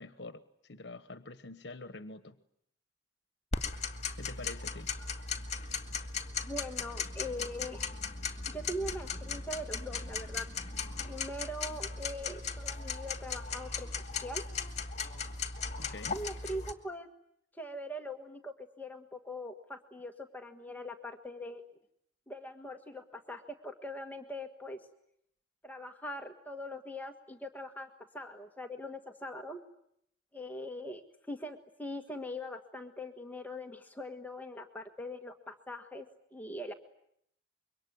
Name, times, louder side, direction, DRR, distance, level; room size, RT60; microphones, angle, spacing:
voice 1, 0.0-2.3 4.2-4.9 15.8-16.2, left 2 dB, 70° left, 11 dB, 1.2 m, -46 dB
Tick-tock, 3.5-16.7, left 5 dB, 40° left, 2.2 m, -37 dB
voice 2, 6.5-7.9 8.5-10.5 11.0-13.9 14.2-14.4 16.1-17.1 17.5-21.7 22.3-24.8 25.6-29.6 30.3-36.0 36.3-36.7, left 1 dB, 10° left, 4 dB, 1.5 m, -42 dB
26.0 x 23.5 x 9.5 m, 0.73 s
head